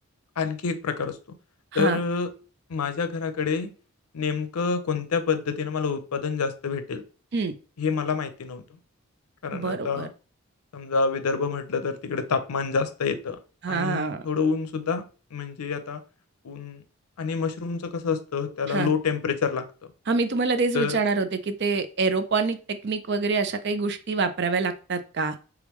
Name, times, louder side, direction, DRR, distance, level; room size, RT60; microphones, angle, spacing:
voice 1, 0.4-1.2 1.7-2.3 2.7-3.7 4.1-7.0 7.8-8.8 9.4-10.1 10.7-13.4 13.7-16.0 16.4-16.8 17.2-19.7 20.7-21.0, left 5 dB, 90° left, 10 dB, 0.6 m, -27 dB
voice 2, 9.5-10.1 13.6-14.2 18.7-18.9 20.1-25.4, right 4 dB, 50° right, 10 dB, 0.4 m, -26 dB
3.5 x 3.5 x 3.0 m, 0.35 s
head